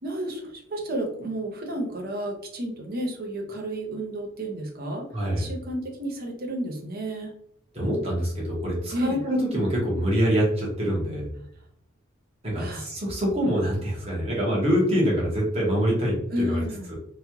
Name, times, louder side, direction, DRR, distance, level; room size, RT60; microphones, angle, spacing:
voice 1, 0.0-5.1 5.4-7.3 8.9-9.2 12.6-12.9 16.3-16.9, right 1 dB, 45° right, 1 dB, 0.7 m, -31 dB
voice 2, 5.1-5.5 7.7-11.3 12.4-16.6 16.9-17.0, equal, 30° right, -4 dB, 1.1 m, -25 dB
3.1 x 2.4 x 2.9 m, 0.71 s
head